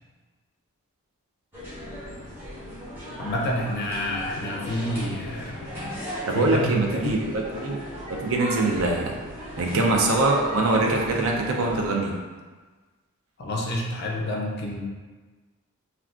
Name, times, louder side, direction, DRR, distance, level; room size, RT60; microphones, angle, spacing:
sound 1, 1.5-11.9, equal, 10° right, 0.8 m, -37 dB
voice 1, 3.2-5.8 6.3-7.2 13.4-14.8, left 1 dB, 45° left, -1 dB, 0.4 m, -29 dB
voice 2, 6.3-7.8 8.1-9.2 9.6-12.1, right 2 dB, 65° right, 1 dB, 0.4 m, -23 dB
2.3 x 2.3 x 3.6 m, 1.3 s
head